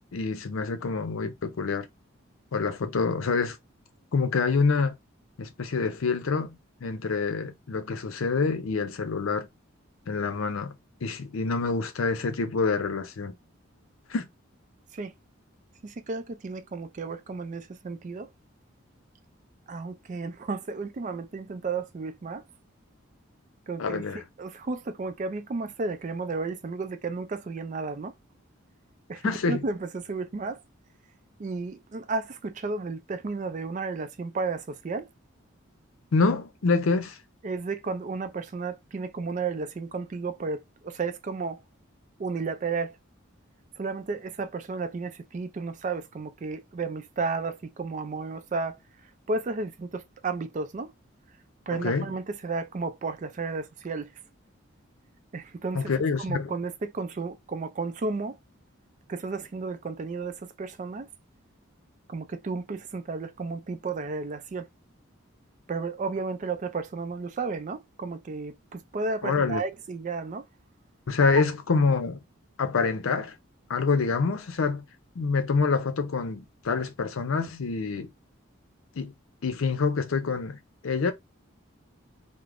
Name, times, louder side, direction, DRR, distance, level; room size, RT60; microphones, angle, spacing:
voice 1, 0.1-1.9 2.5-3.6 4.1-5.0 5.4-9.5 10.1-10.7 11.0-13.4 14.1-14.3 23.8-24.2 29.2-29.6 36.1-37.2 51.8-52.1 55.7-56.5 69.2-69.6 71.1-72.2 72.6-73.3 73.7-74.9 75.2-78.1 79.0-79.1 79.4-80.6 80.8-81.1, left 4 dB, 80° left, 0.5 m, -26 dB
voice 2, 15.8-18.3 19.7-22.4 23.7-24.0 24.4-28.1 29.1-30.6 31.4-35.1 37.4-41.6 42.2-43.0 43.8-48.8 49.3-50.9 51.7-54.1 55.3-55.9 56.2-58.4 59.1-61.1 62.1-64.7 65.7-70.4 71.3-71.4, right 4 dB, 35° right, 0.3 m, -33 dB
3.3 x 2.0 x 2.4 m
head